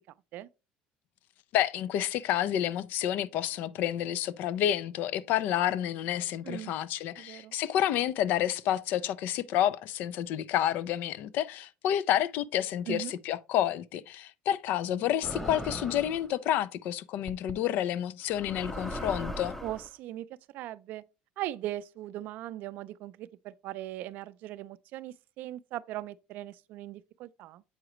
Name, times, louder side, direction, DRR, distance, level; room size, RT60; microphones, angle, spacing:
voice 1, 1.5-19.6, left 11 dB, 65° left, 0.4 m, -29 dB
voice 2, 7.2-7.5 12.9-13.2 19.6-20.3 20.5-21.0 21.4-27.6, right 14 dB, 65° right, 0.4 m, -39 dB
sound 1, 15.2-16.3 17.3-17.5 18.3-19.9, left 1 dB, 10° left, 0.6 m, -38 dB
7.8 x 4.8 x 3.0 m
cardioid pair, 125°, 3 cm